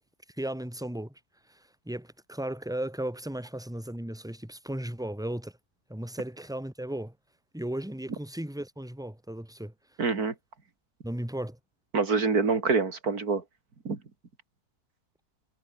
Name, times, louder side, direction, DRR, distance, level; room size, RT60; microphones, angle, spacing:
voice 1, 0.4-1.2 1.5-5.5 5.9-7.1 7.5-9.7 11.0-11.6, right 1 dB, ahead, 2.6 m, -35 dB
voice 2, 10.0-10.3 11.9-13.4 13.8-14.0, right 4 dB, 75° right, 3.3 m, -26 dB
omnidirectional pair, 1.6 m